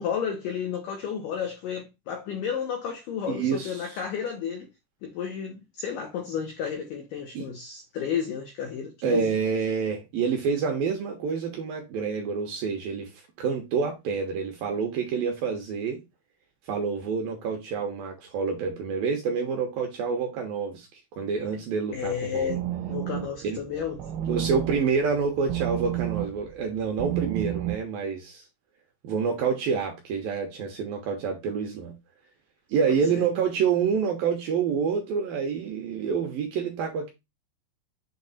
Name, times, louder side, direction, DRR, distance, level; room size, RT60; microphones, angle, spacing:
voice 1, 0.0-4.7 5.0-9.4 21.9-22.6 22.9-24.0 32.9-33.3, left 7 dB, 85° left, 1.9 m, -32 dB
voice 2, 3.3-3.8 7.3-7.5 9.0-16.0 16.7-22.6 23.4-23.6 24.3-28.5 29.0-31.9 32.7-37.1, right 6 dB, 75° right, 2.3 m, -28 dB
sound 1, 21.9-27.8, right 12 dB, 90° right, 3.0 m, -32 dB
7.7 x 3.0 x 4.2 m
omnidirectional pair, 5.2 m